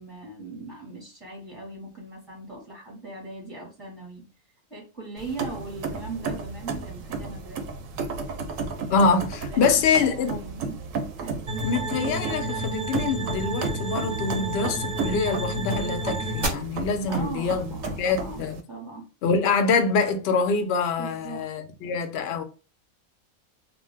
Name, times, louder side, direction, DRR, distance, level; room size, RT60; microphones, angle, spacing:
voice 1, 0.0-4.3 4.7-7.6 9.4-10.7 11.2-11.5 17.1-19.1 21.0-21.4, right 2 dB, ahead, 0.8 m, -39 dB
sound 1, 5.2-18.6, right 4 dB, 70° right, 0.9 m, -34 dB
voice 2, 8.9-10.4 11.6-18.6 19.2-22.4, left 5 dB, 65° left, 0.6 m, -25 dB
sound 2, 11.5-16.5, right 1 dB, 40° right, 0.7 m, -30 dB
2.5 x 2.1 x 3.3 m
omnidirectional pair, 1.5 m